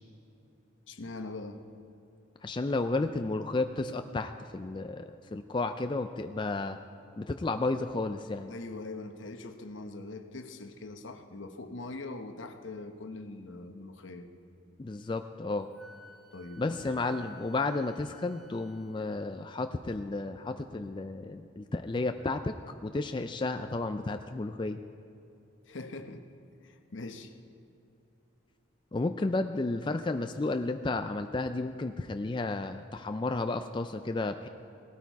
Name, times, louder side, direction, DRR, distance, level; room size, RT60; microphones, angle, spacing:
voice 1, 0.9-1.6 8.5-14.3 16.3-16.8 25.7-26.2 26.6-27.3, left 2 dB, 75° left, 7 dB, 1.0 m, -42 dB
voice 2, 2.4-6.8 7.2-8.5 14.8-15.7 16.6-22.5 22.8-24.8 28.9-34.5, left 2 dB, 25° left, 7 dB, 0.3 m, -32 dB
Wind instrument woodwind instrument, 15.8-19.2, right 1 dB, ahead, 1.0 m, -53 dB
17.5 x 13.0 x 4.7 m, 2.7 s
head